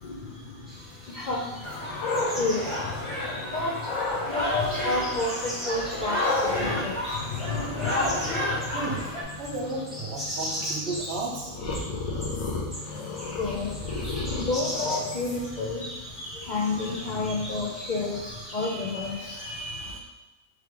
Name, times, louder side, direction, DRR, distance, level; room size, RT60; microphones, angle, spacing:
voice 1, 0.0-9.0 9.4-9.5 12.7-20.0, left 3 dB, 60° left, -4 dB, 0.5 m, -32 dB
sound 1, 0.7-18.8, equal, ahead, 0.8 m, -40 dB
sound 2, 1.6-3.4 3.8-4.3 6.2-15.6, left 3 dB, 85° left, 1.3 m, -34 dB
sound 3, 1.6-9.2, left 1 dB, 20° left, 1.2 m, -31 dB
voice 2, 8.7-9.1 9.4-11.6, right 3 dB, 55° right, 0 dB, 0.9 m, -33 dB
3.5 x 3.3 x 4.6 m, 1.0 s
omnidirectional pair, 1.5 m